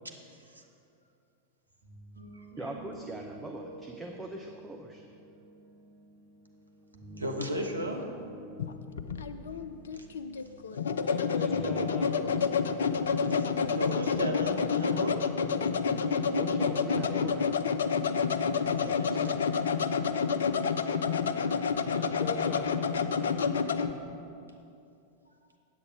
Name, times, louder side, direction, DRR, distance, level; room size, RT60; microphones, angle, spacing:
sound 1, 1.7-15.1, right 1 dB, 55° right, 1.5 m, -50 dB
voice 1, 2.6-5.0 16.4-17.6 18.8-19.4 22.5-22.6, right 2 dB, 10° right, 1 dB, 0.6 m, -41 dB
voice 2, 7.2-8.0 13.3-13.5 13.7-15.2 18.6-19.3, equal, 80° right, 2 dB, 0.9 m, -36 dB
sound 2, 8.6-23.9, left 6 dB, 65° left, 0.4 m, -29 dB
voice 3, 11.0-12.4 16.9-17.1 21.9-23.4, left 2 dB, 20° left, 0 dB, 1.6 m, -40 dB
8.5 x 8.1 x 5.1 m, 2.5 s
figure-of-eight pair, 90°, 0 cm